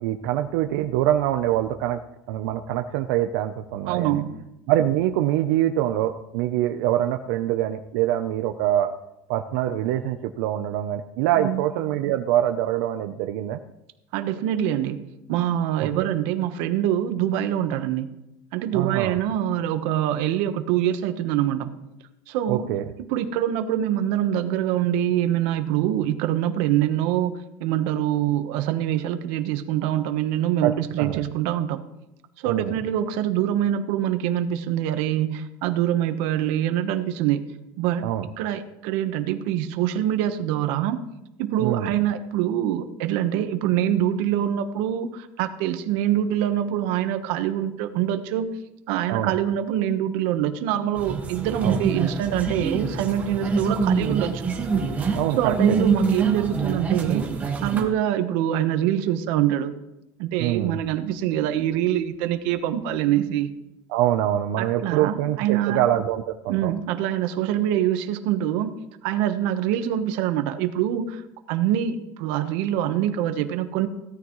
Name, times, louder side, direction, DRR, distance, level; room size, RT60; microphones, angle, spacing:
voice 1, 0.0-2.0 2.3-4.2 4.7-9.0 9.3-13.6 15.8-16.1 18.7-19.2 22.5-22.8 30.6-31.2 32.4-32.7 38.0-38.3 41.6-41.9 49.1-49.3 51.6-51.8 55.1-55.8 60.4-60.8 63.9-66.7, right 12 dB, 90° right, 6 dB, 0.7 m, -24 dB
voice 2, 3.9-4.4 11.4-11.6 14.1-15.0 15.3-18.1 18.5-21.7 22.3-22.7 23.1-31.8 32.4-38.0 38.4-41.0 41.4-48.6 48.9-54.4 55.4-57.3 57.6-59.7 60.2-63.5 64.6-65.8 66.5-68.7 69.0-71.2 71.5-73.9, right 11 dB, 65° right, 8 dB, 1.2 m, -24 dB
sound 1, 51.0-57.8, right 5 dB, 15° right, 1.6 m, -25 dB
17.5 x 13.0 x 3.2 m, 0.88 s
cardioid pair, 175°, 9 cm